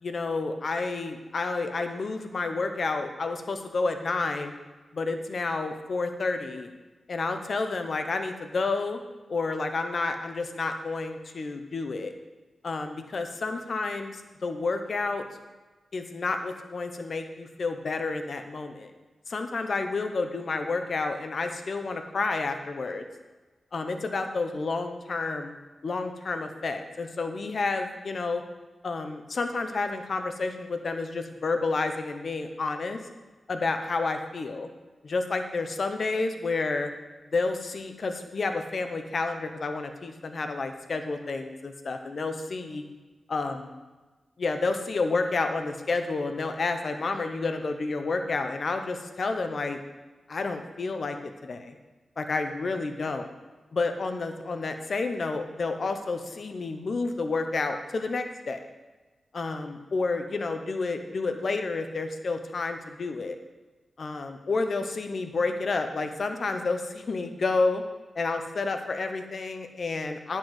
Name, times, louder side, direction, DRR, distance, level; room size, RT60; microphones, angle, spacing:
voice 1, 0.0-4.5 4.9-6.7 7.1-9.0 9.3-12.1 12.6-15.2 15.9-18.9 19.3-23.1 23.7-25.5 25.8-28.4 28.8-33.0 33.5-34.7 35.0-36.9 37.3-42.8 43.3-43.7 44.4-49.8 50.3-51.8 52.2-53.3 53.7-58.6 59.3-63.4 64.0-67.8 68.1-70.4, left 3 dB, 65° left, 6 dB, 1.0 m, -30 dB
10.5 x 4.6 x 7.9 m, 1.2 s
cardioid pair, 55°, 0 cm